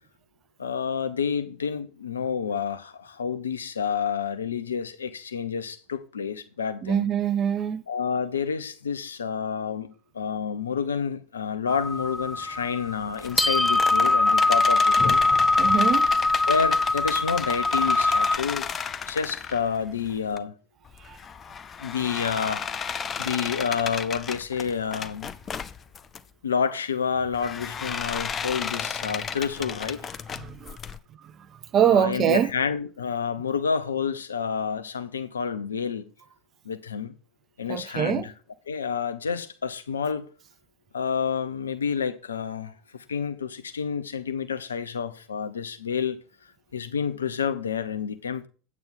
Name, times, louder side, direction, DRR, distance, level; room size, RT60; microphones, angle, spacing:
voice 1, 0.6-7.1 7.9-15.2 16.5-18.7 19.1-20.5 21.8-25.3 26.4-30.1 31.8-36.1 36.6-37.1 37.6-38.3 38.7-40.3 40.9-46.2 46.7-48.5, left 6 dB, 80° left, 0.8 m, -29 dB
voice 2, 6.8-7.8 15.6-16.1 21.0-21.2 30.3-30.8 31.2-32.5 37.7-38.3, right 9 dB, 40° right, 0.7 m, -24 dB
sound 1, 11.7-18.4, left 2 dB, 5° left, 0.3 m, -22 dB
sound 2, 13.1-20.4 20.9-26.2 27.3-31.0, left 6 dB, 30° left, 0.7 m, -34 dB
8.7 x 8.4 x 3.7 m
figure-of-eight pair, 70°, 0 cm